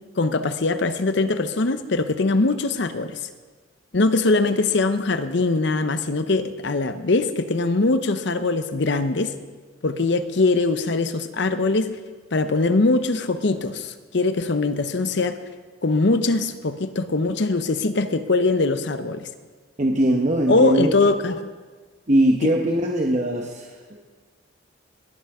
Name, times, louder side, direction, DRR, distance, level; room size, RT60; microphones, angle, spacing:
voice 1, 0.2-3.2 3.9-9.3 9.8-12.0 12.3-15.4 15.8-19.3 20.5-21.4 22.4-22.5, left 3 dB, 60° left, 11 dB, 0.8 m, -22 dB
voice 2, 19.8-20.9 22.1-24.1, right 1 dB, 40° right, 0 dB, 1.0 m, -21 dB
20.5 x 8.2 x 4.9 m, 1.4 s
head